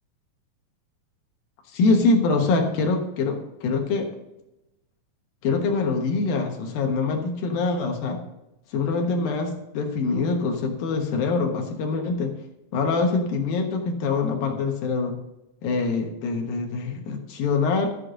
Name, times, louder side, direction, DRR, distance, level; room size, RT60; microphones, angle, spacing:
voice 1, 1.7-4.1 5.4-8.2 8.7-12.3 12.7-15.1 15.6-17.9, left 4 dB, 75° left, 3 dB, 2.9 m, -24 dB
13.0 x 8.1 x 3.8 m, 0.92 s
omnidirectional pair, 4.3 m